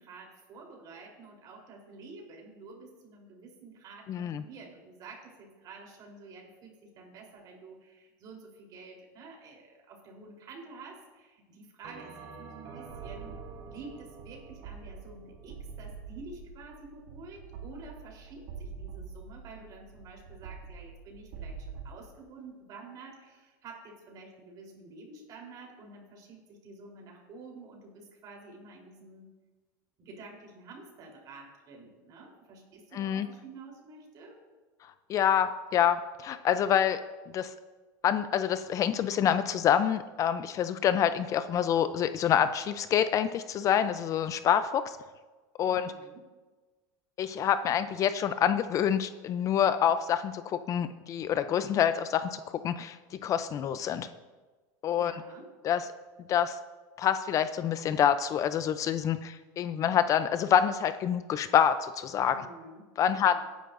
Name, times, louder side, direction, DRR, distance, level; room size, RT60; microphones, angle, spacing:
voice 1, 0.0-13.4 13.6-29.3 30.0-34.4 45.6-46.2 54.9-55.5 62.3-63.4, right 3 dB, 45° right, 0 dB, 3.7 m, -49 dB
voice 2, 4.1-4.4 32.9-33.3 35.1-37.0 37.3-37.5 38.0-45.0 45.6-45.9 47.2-53.0 53.2-54.1 54.8-55.1 55.6-55.8 56.3-56.6 57.0-62.4 63.0-63.4, left 9 dB, 35° left, 12 dB, 0.5 m, -27 dB
Bell, 11.8-16.4, right 4 dB, 65° right, 3.5 m, -49 dB
sound 1, 12.9-21.9, right 5 dB, 80° right, 2.4 m, -45 dB
18.0 x 10.0 x 2.6 m, 1.3 s
supercardioid pair, 130°, 9 cm